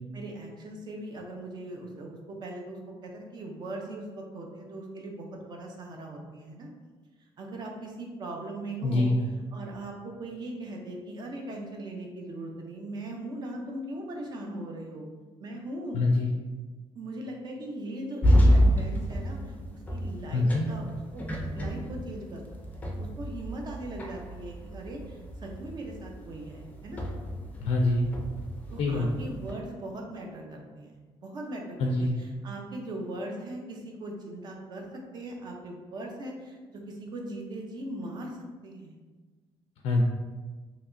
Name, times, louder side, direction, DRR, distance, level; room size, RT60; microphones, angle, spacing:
voice 1, 0.1-6.7 7.4-9.1 9.5-15.1 15.4-16.0 16.9-20.8 21.1-21.3 21.5-22.4 22.7-27.0 28.7-38.4 38.6-38.9, right 1 dB, 45° right, 1 dB, 0.5 m, -39 dB
voice 2, 8.8-9.2 15.9-16.3 20.3-20.7 27.6-28.1 28.8-29.1 31.8-32.1 39.8-40.0, left 2 dB, 80° left, 0 dB, 0.4 m, -24 dB
sound 1, 18.2-29.5, equal, 15° left, 0.4 m, -29 dB
3.2 x 2.8 x 2.6 m, 1.4 s
cardioid pair, 145°, 11 cm